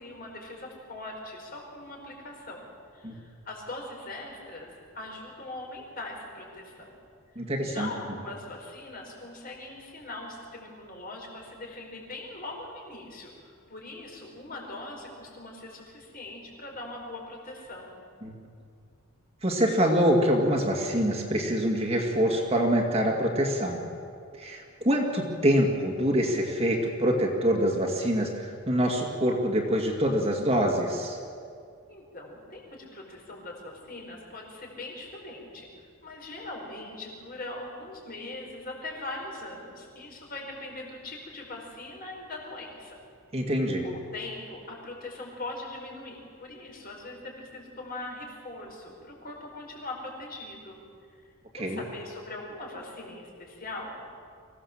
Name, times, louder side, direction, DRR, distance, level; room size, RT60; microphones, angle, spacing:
voice 1, 0.0-2.7 2.9-6.9 7.6-17.9 31.9-43.0 43.8-50.8 51.6-54.0, left 2 dB, 40° left, 0 dB, 5.2 m, -41 dB
voice 2, 7.4-7.9 18.2-18.4 19.4-23.8 24.4-31.2 43.3-43.9 51.6-51.8, equal, 30° right, 1 dB, 2.2 m, -25 dB
25.0 x 16.5 x 7.4 m, 2.3 s
head